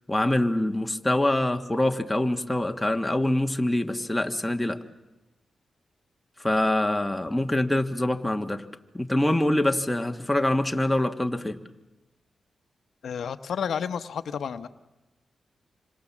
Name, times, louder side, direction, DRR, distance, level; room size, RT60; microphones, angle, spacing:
voice 1, 0.1-4.8 6.4-8.6 8.9-11.6, left 1 dB, 10° left, 5 dB, 1.5 m, -25 dB
voice 2, 13.0-14.7, left 7 dB, 75° left, 11 dB, 0.9 m, -31 dB
26.5 x 26.0 x 7.3 m, 1.0 s
cardioid pair, 75°, 0 cm